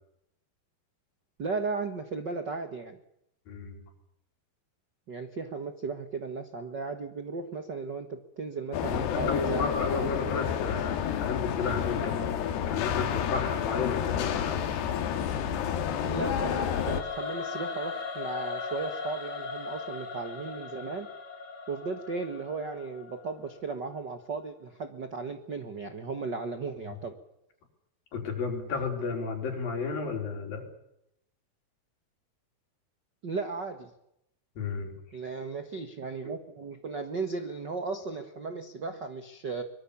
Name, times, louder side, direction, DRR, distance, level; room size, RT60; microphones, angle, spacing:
voice 1, 1.4-3.0 5.1-10.1 16.0-21.1 21.7-27.2 33.2-33.9 35.1-39.6, right 4 dB, 55° right, 7 dB, 1.2 m, -36 dB
voice 2, 3.5-3.8 8.9-12.4 12.7-14.6 28.1-30.7 34.6-34.9, left 4 dB, 60° left, 3 dB, 6.4 m, -33 dB
sound 1, 8.7-17.0, left 9 dB, 80° left, 3.8 m, -30 dB
Singing / Musical instrument, 16.6-23.7, left 5 dB, 25° left, 2.9 m, -38 dB
24.5 x 22.0 x 7.1 m, 0.79 s
omnidirectional pair, 4.7 m